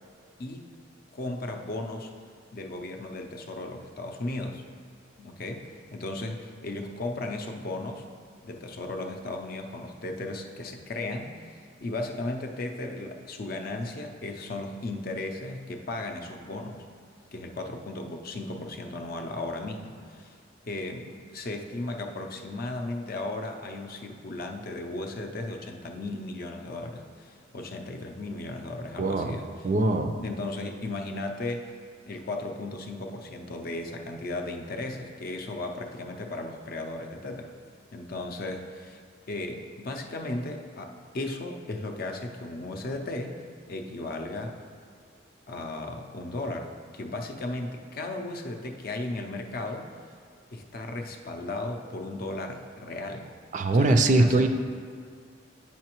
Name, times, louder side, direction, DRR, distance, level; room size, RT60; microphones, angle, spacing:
voice 1, 1.1-2.1 2.5-4.6 5.2-8.0 8.4-16.9 17.3-20.4 20.7-31.7 32.0-37.5 37.9-39.0 39.3-44.6 45.5-49.9 50.5-53.3 53.7-54.5, left 2 dB, 50° left, 4 dB, 0.5 m, -36 dB
voice 2, 29.0-29.4 29.6-30.1 53.5-54.5, right 2 dB, 40° right, 7 dB, 0.3 m, -22 dB
8.4 x 5.6 x 3.0 m, 2.1 s
head